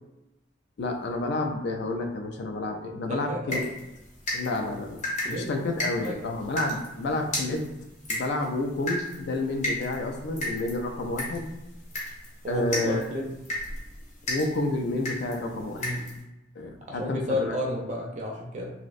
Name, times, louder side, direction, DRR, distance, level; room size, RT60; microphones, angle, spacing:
voice 1, 0.8-3.7 4.3-5.0 5.3-7.7 8.1-11.5 12.5-13.0 14.3-15.9 16.6-17.6, left 2 dB, 60° left, 4 dB, 0.3 m, -30 dB
voice 2, 3.1-3.7 5.2-5.5 6.0-6.3 12.4-13.3 15.8-16.1 16.9-18.7, left 1 dB, 35° right, -1 dB, 0.4 m, -31 dB
sound 1, 3.5-16.2, left 1 dB, 40° left, 0.7 m, -35 dB
2.5 x 2.0 x 2.4 m, 0.96 s
head